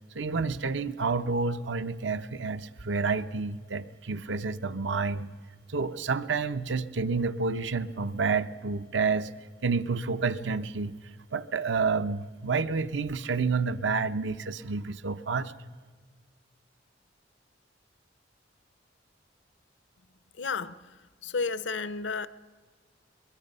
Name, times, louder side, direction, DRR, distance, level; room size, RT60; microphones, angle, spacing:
voice 1, 0.1-5.3 5.7-9.3 9.6-10.9 11.3-15.5, right 4 dB, 75° right, 0.7 m, -29 dB
voice 2, 20.4-20.8 21.2-22.3, left 4 dB, 75° left, 0.7 m, -31 dB
23.0 x 21.5 x 5.4 m
head